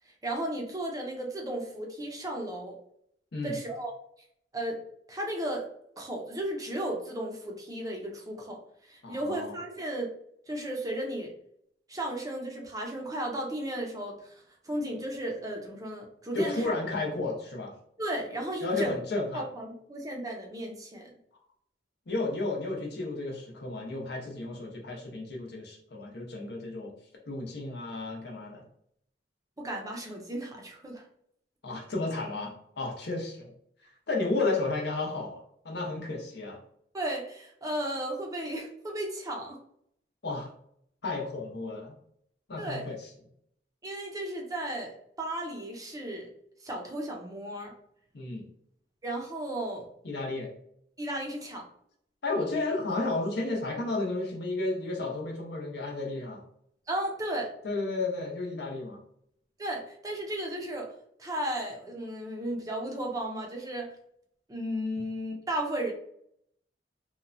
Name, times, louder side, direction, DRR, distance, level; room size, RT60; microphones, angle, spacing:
voice 1, 0.2-2.8 3.4-3.9 4.5-4.8 5.1-5.7 6.0-8.6 8.9-10.1 10.5-11.3 11.9-16.7 18.0-19.0 19.3-21.1 29.6-31.0 36.9-39.6 42.6-42.8 43.8-46.3 46.6-47.7 49.0-49.9 51.0-51.7 56.9-57.5 59.6-60.9 61.2-63.9 64.5-65.9, right 1 dB, 20° right, 0 dB, 0.5 m, -34 dB
voice 2, 9.0-9.6 16.3-17.7 18.6-19.4 22.1-26.9 27.3-28.6 31.6-33.5 34.1-36.6 40.2-40.5 41.0-41.9 42.5-43.1 48.1-48.5 50.0-50.5 52.2-56.4 57.6-59.0, left 2 dB, 65° left, 0 dB, 0.7 m, -32 dB
2.9 x 2.1 x 2.5 m, 0.69 s
head